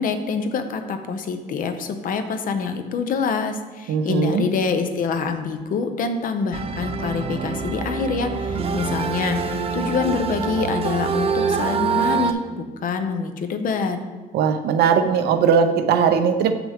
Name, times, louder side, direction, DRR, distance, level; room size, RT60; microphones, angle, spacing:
voice 1, 0.0-14.0, left 5 dB, 55° left, 7 dB, 0.8 m, -26 dB
voice 2, 3.9-4.4 14.3-16.5, right 7 dB, 75° right, 8 dB, 0.7 m, -19 dB
sound 1, 6.5-12.3, right 5 dB, 35° right, 0.5 m, -25 dB
7.3 x 5.9 x 3.5 m, 1.3 s
cardioid pair, 110°, 17 cm